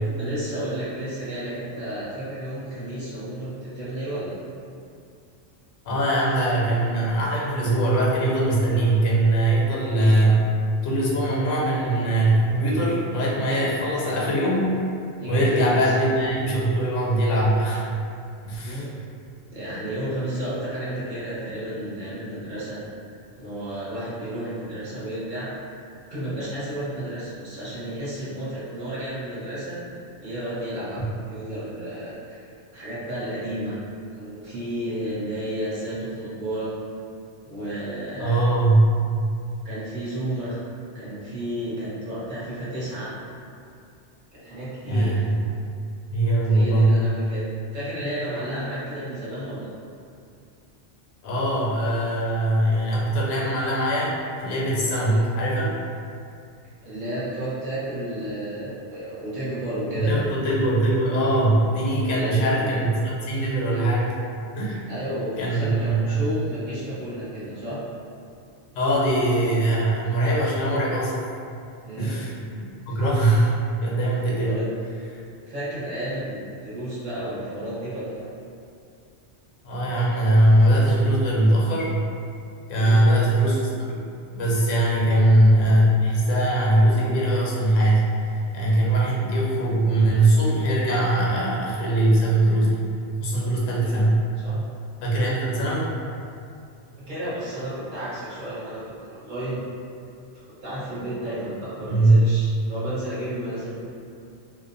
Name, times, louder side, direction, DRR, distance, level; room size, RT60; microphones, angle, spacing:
voice 1, 0.2-4.3 13.9-14.1 15.2-15.9 18.6-19.1 19.5-22.8 23.4-25.5 26.1-29.8 30.2-33.8 34.2-36.7 37.4-38.4 39.6-40.6 40.9-43.1 44.3-45.1 46.5-49.7 55.0-55.2 56.8-60.2 62.1-62.7 64.9-67.8 71.8-72.2 72.9-73.0 74.4-74.6 75.5-78.2 82.8-83.1 85.0-85.2 93.8-94.0 94.4-94.6 97.0-99.6 100.4-103.8, right 1 dB, 45° right, -10 dB, 0.9 m, -32 dB
voice 2, 5.8-10.4 10.8-14.6 15.3-17.9 18.4-18.9 38.2-39.0 44.8-45.4 46.1-47.0 51.2-55.7 60.0-64.2 64.5-64.8 65.4-66.2 68.7-71.2 71.9-74.6 75.1-75.2 79.6-81.9 82.7-83.9 84.3-92.8 93.2-94.2 95.0-95.9 101.8-102.2, right 1 dB, 85° left, -5 dB, 1.0 m, -21 dB
2.4 x 2.1 x 2.5 m, 2.4 s
omnidirectional pair, 1.2 m